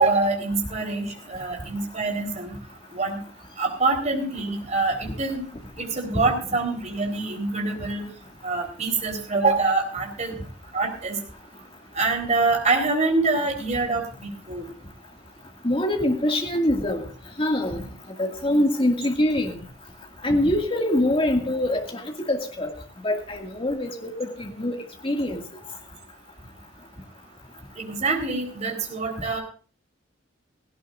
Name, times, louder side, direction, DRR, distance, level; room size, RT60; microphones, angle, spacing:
voice 1, 0.0-2.6 2.9-3.2 3.6-5.4 5.8-8.1 8.4-10.3 10.7-11.2 12.0-14.7 27.8-29.4, right 3 dB, 40° right, 3 dB, 4.2 m, -25 dB
voice 2, 15.6-17.0 17.4-17.8 18.2-19.5 20.2-22.0 22.3-22.7 23.0-24.8 25.0-25.4, left 1 dB, 30° left, 3 dB, 2.3 m, -24 dB
17.5 x 16.5 x 2.6 m, 0.40 s
head